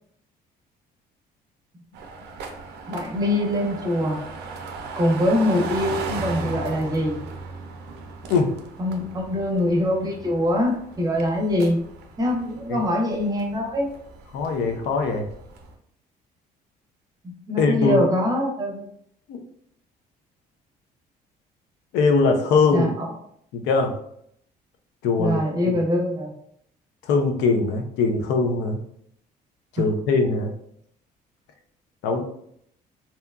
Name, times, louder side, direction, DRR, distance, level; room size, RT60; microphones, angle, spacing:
sound 1, 1.9-15.7, right 3 dB, 75° right, 0.5 m, -37 dB
voice 1, 2.9-4.2 5.0-7.2 8.8-11.8 12.2-13.9 17.2-18.9 22.7-23.1 25.2-26.3, left 1 dB, 20° right, 0 dB, 0.6 m, -23 dB
voice 2, 14.3-15.2 17.6-18.1 19.3-19.4 21.9-22.9 23.5-23.9 25.0-25.4 25.7-25.8 27.1-28.8 29.7-30.5 32.0-32.2, left 4 dB, 85° left, 4 dB, 0.5 m, -21 dB
2.7 x 2.2 x 2.3 m, 0.69 s
cardioid pair, 110°, 17 cm